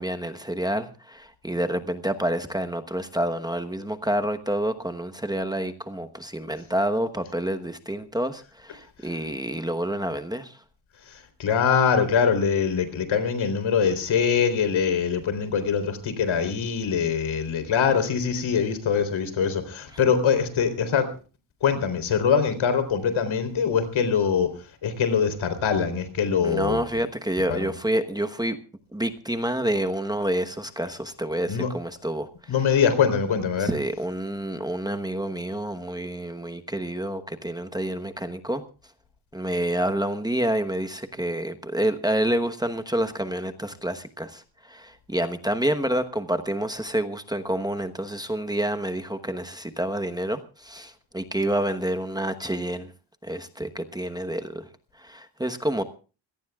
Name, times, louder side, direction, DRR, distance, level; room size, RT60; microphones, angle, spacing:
voice 1, 0.0-10.6 26.4-28.6 28.9-32.5 33.6-38.6 39.3-52.9 53.2-54.7 55.0-55.8, right 1 dB, 10° right, 1.1 m, -28 dB
voice 2, 11.1-21.1 21.6-24.5 24.8-26.8 27.5-27.6 31.5-31.7 32.5-33.7, left 6 dB, 80° left, 3.9 m, -23 dB
26.0 x 17.5 x 2.4 m
wide cardioid pair, 140°, 47 cm